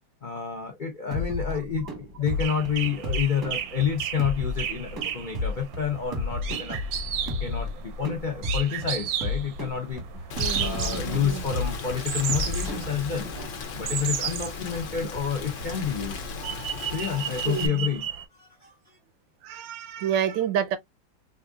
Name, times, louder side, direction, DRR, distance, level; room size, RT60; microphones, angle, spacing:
voice 1, 0.2-6.8 7.4-10.0 10.6-13.3 13.7-16.2 16.8-18.1 18.3-19.0, left 7 dB, 75° left, 0.4 m, -29 dB
sound 1, 1.1-13.4, left 2 dB, 15° right, 0.7 m, -33 dB
sound 2, 2.3-18.2, right 8 dB, 65° right, 0.9 m, -34 dB
Rain, 10.3-17.7, left 4 dB, 60° left, 0.8 m, -36 dB
voice 2, 10.4-11.4 16.4-17.9 19.4-20.8, right 9 dB, 85° right, 1.4 m, -30 dB
4.4 x 2.6 x 2.2 m
omnidirectional pair, 2.0 m